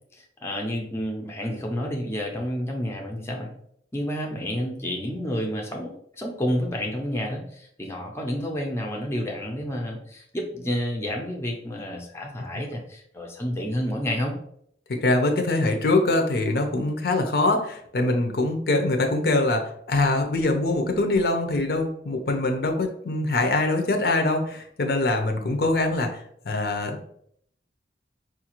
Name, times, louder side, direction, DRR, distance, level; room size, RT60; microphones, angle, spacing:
voice 1, 0.1-3.5 3.9-14.4, equal, 15° left, 0 dB, 0.5 m, -30 dB
voice 2, 14.9-27.2, left 2 dB, 60° left, 4 dB, 0.5 m, -23 dB
4.7 x 2.4 x 2.9 m, 0.67 s
head